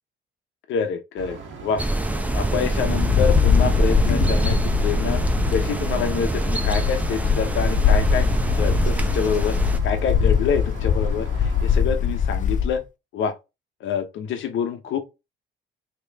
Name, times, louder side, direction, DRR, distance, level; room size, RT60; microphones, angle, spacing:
voice 1, 0.7-1.8 2.3-5.2 5.5-8.3 8.6-9.6 9.8-12.9 13.1-13.3 13.8-15.0, left 7 dB, 75° left, 0.9 m, -26 dB
sound 1, 1.2-11.8, right 5 dB, 75° right, 1.2 m, -39 dB
sound 2, 1.8-9.8, right 1 dB, 5° right, 0.6 m, -24 dB
Wind, 2.8-12.8, left 7 dB, 40° left, 0.4 m, -22 dB
3.3 x 3.0 x 3.3 m
cardioid pair, 90°, 20 cm